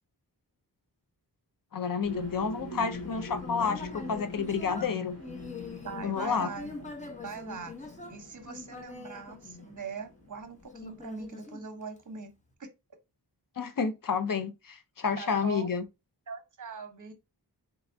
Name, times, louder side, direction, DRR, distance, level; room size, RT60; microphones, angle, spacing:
voice 1, 1.7-5.2 6.0-6.5 13.6-15.8, left 6 dB, 55° left, 0.6 m, -30 dB
sound 1, 2.0-11.2, left 3 dB, 35° left, 1.5 m, -43 dB
Human voice, 2.8-10.1 10.7-12.2, left 2 dB, 20° left, 0.7 m, -44 dB
voice 2, 5.8-6.8 7.2-7.7 8.1-12.3 15.2-15.7 16.3-17.1, right 5 dB, 45° right, 0.8 m, -41 dB
3.3 x 3.0 x 2.5 m
wide cardioid pair, 75°, 41 cm